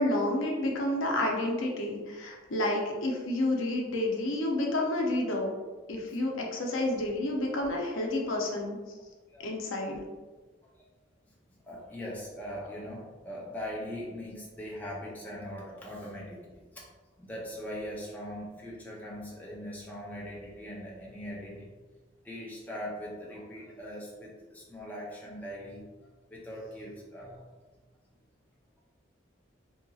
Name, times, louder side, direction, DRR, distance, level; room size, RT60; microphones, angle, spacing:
voice 1, 0.0-5.5 5.9-8.8 9.4-10.0, left 1 dB, 80° left, 0 dB, 0.5 m, -30 dB
voice 2, 11.7-16.8 17.2-21.7 22.2-27.5, equal, 10° left, -5 dB, 0.5 m, -41 dB
2.7 x 2.6 x 2.3 m, 1.3 s
head